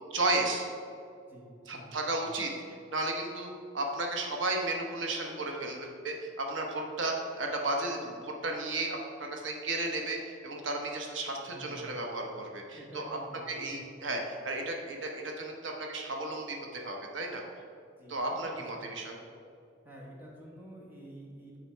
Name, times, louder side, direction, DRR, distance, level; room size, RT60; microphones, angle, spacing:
voice 1, 0.1-0.7 1.7-13.2 13.5-17.4 18.1-19.2, right 2 dB, 85° right, 1 dB, 1.0 m, -34 dB
voice 2, 1.3-1.9 11.5-12.0 12.8-13.9 18.0-18.8 19.8-21.6, equal, 10° right, -4 dB, 1.4 m, -49 dB
7.4 x 5.1 x 4.5 m, 2.4 s
head